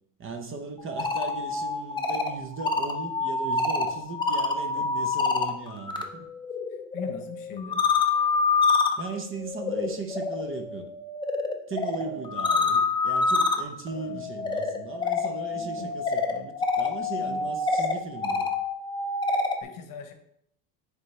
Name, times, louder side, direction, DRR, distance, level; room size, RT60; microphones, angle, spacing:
voice 1, 0.2-6.2 9.0-10.9 11.7-18.5, right 4 dB, 30° right, 5 dB, 0.7 m, -37 dB
sound 1, 0.8-6.0 6.4-19.6, left 4 dB, 10° left, 0.4 m, -27 dB
voice 2, 6.9-7.8 12.0-12.2 13.9-14.3 15.5-15.9 17.2-17.5 19.3-20.1, left 5 dB, 50° left, 7 dB, 0.9 m, -41 dB
8.9 x 3.4 x 3.2 m, 0.75 s
cardioid pair, 125°, 42 cm